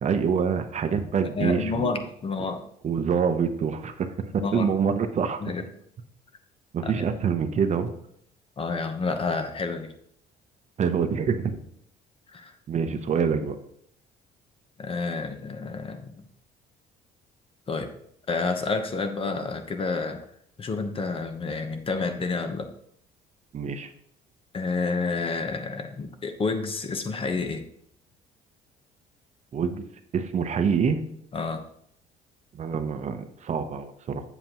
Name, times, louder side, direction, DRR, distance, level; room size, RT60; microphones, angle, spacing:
voice 1, 0.0-1.9 2.8-5.4 6.7-7.9 10.8-11.6 12.7-13.6 23.5-23.9 29.5-29.8 30.1-31.0 32.5-34.2, right 6 dB, 45° right, 8 dB, 0.8 m, -26 dB
voice 2, 1.4-2.6 4.4-4.7 5.4-5.7 6.8-6.9 8.6-9.9 12.3-12.6 14.8-16.2 17.7-17.9 18.3-20.2 20.6-22.7 24.5-27.6 31.3-31.6, left 4 dB, 35° left, 7 dB, 0.9 m, -29 dB
8.0 x 7.4 x 3.0 m, 0.69 s
cardioid pair, 110°, 17 cm